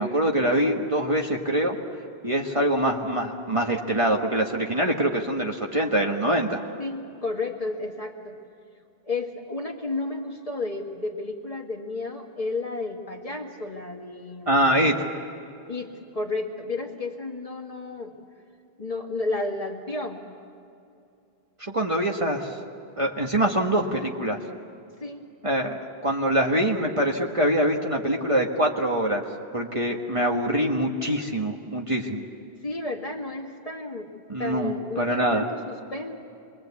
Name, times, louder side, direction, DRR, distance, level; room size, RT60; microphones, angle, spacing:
voice 1, 0.0-1.8 2.2-6.6 14.5-15.0 21.6-22.6 23.0-24.4 25.4-29.2 29.5-32.2 34.3-35.5, right 1 dB, 30° right, 1 dB, 1.4 m, -24 dB
voice 2, 6.8-8.4 9.0-14.7 15.7-18.1 18.8-20.2 25.0-25.2 32.6-34.1 34.4-36.2, left 2 dB, 35° left, 1 dB, 2.0 m, -32 dB
26.5 x 22.0 x 8.3 m, 2.6 s
omnidirectional pair, 1.1 m